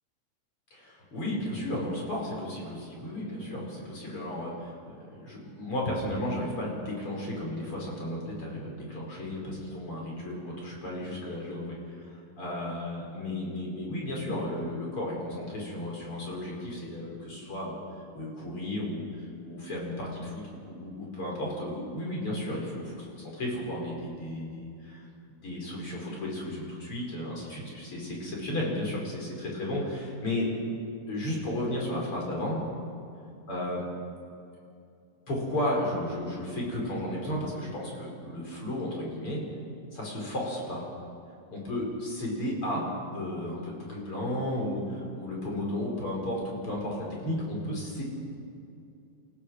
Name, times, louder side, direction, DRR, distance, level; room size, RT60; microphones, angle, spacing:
voice 1, 0.7-17.8 18.1-19.0 19.4-25.1 25.4-30.5 31.1-32.6 33.5-33.8 35.3-39.4 39.9-40.8 41.5-42.8 43.1-47.0 47.2-48.0, left 1 dB, 40° left, -2 dB, 5.8 m, -34 dB
28.5 x 16.0 x 6.5 m, 2.6 s
omnidirectional pair, 3.9 m